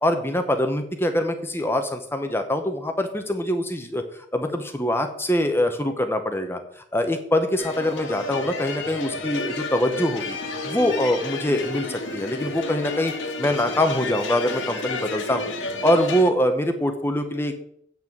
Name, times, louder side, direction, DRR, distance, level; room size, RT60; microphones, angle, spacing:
voice 1, 0.0-10.4 10.6-15.5 15.8-17.5, left 1 dB, 10° left, 6 dB, 0.8 m, -24 dB
sound 1, 7.6-16.3, left 3 dB, 90° left, 2.0 m, -31 dB
8.8 x 6.1 x 7.6 m, 0.69 s
head